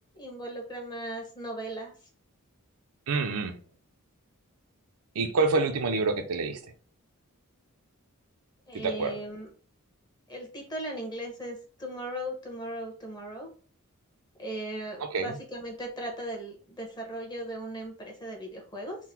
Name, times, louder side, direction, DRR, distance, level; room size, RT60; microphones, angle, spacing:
voice 1, 0.1-1.9 8.7-9.5 10.3-13.5 14.4-19.0, right 1 dB, 20° left, 1.1 m, -37 dB
voice 2, 3.1-3.5 5.2-6.6 8.7-9.1 15.0-15.4, right 3 dB, 75° right, 0.6 m, -27 dB
3.8 x 2.1 x 4.4 m
head